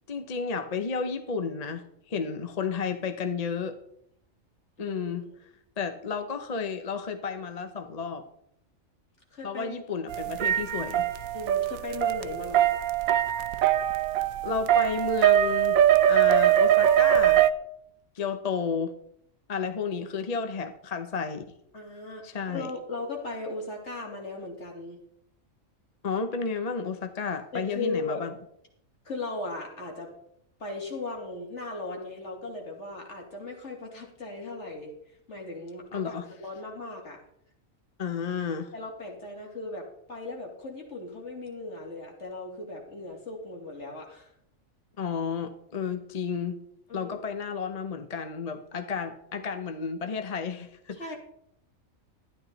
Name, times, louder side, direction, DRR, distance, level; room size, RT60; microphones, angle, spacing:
voice 1, 0.1-3.8 4.8-5.2 5.8-8.2 9.4-11.0 14.4-15.8 16.1-17.4 18.1-18.9 19.5-21.4 22.2-22.7 26.0-28.3 35.9-36.3 38.0-38.7 45.0-46.6 46.9-51.1, left 5 dB, 35° left, 7 dB, 0.7 m, -32 dB
voice 2, 9.3-9.8 11.3-12.7 21.7-25.0 27.5-28.2 29.0-30.1 30.6-34.9 35.3-36.1 36.4-37.2 38.7-44.3 46.9-47.2 50.9-51.2, left 2 dB, 55° left, 0 dB, 2.8 m, -37 dB
sound 1, 10.1-17.5, right 11 dB, 90° right, 1.1 m, -22 dB
12.5 x 10.5 x 4.0 m, 0.73 s
omnidirectional pair, 1.4 m